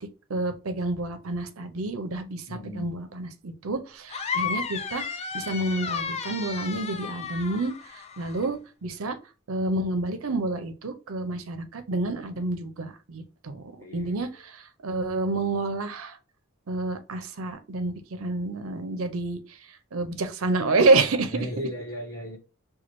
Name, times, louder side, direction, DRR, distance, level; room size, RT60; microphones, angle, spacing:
voice 1, 0.3-9.2 9.5-16.2 16.7-19.6 19.9-21.4, right 2 dB, 70° right, 0.6 m, -28 dB
voice 2, 2.5-2.9 13.8-14.3 21.3-22.4, equal, 10° left, 1.1 m, -35 dB
sound 1, 4.1-8.5, left 5 dB, 30° left, 0.4 m, -33 dB
6.1 x 2.3 x 3.0 m
head